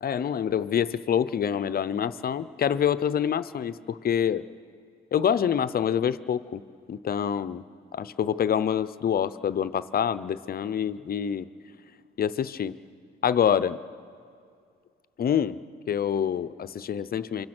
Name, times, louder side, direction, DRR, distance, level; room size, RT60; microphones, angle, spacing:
voice 1, 0.0-4.4 5.1-6.6 6.9-7.6 7.9-11.5 12.2-12.8 13.2-13.8 15.2-15.6 15.9-17.5, left 8 dB, 50° left, 14 dB, 0.7 m, -26 dB
28.0 x 25.0 x 6.1 m, 2.3 s
cardioid pair, 90°, 20 cm